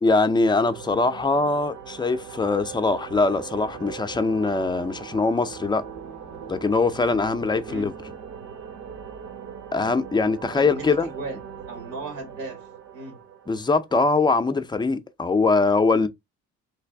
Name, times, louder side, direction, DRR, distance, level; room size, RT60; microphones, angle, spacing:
voice 1, 0.0-5.8 6.5-7.9 9.7-11.1 13.5-16.1, left 3 dB, 15° left, 0.4 m, -22 dB
sound 1, 0.6-14.2, right 8 dB, 65° right, 1.0 m, -40 dB
voice 2, 10.5-11.4 11.7-12.6 12.9-13.2, right 2 dB, 85° right, 1.7 m, -36 dB
3.3 x 2.5 x 3.4 m
cardioid pair, 90°, 30 cm